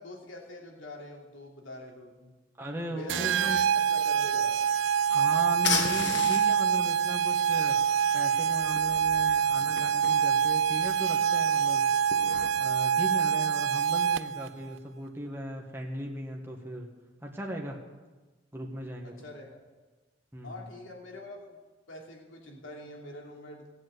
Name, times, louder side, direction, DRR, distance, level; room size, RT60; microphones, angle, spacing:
voice 1, 0.0-2.3 2.9-3.5 3.7-4.5 19.0-19.6 20.4-21.6 21.9-23.7, left 1 dB, 75° left, 0 dB, 2.9 m, -44 dB
voice 2, 2.6-3.6 5.1-7.8 8.1-11.9 12.6-16.9 17.2-17.8 18.5-19.2 20.3-20.7, right 1 dB, 10° right, -1 dB, 1.4 m, -37 dB
sound 1, 3.1-14.5, right 8 dB, 70° right, 0.4 m, -26 dB
sound 2, 4.2-12.5, left 5 dB, 60° left, 1.3 m, -38 dB
17.0 x 8.1 x 7.8 m, 1.3 s
head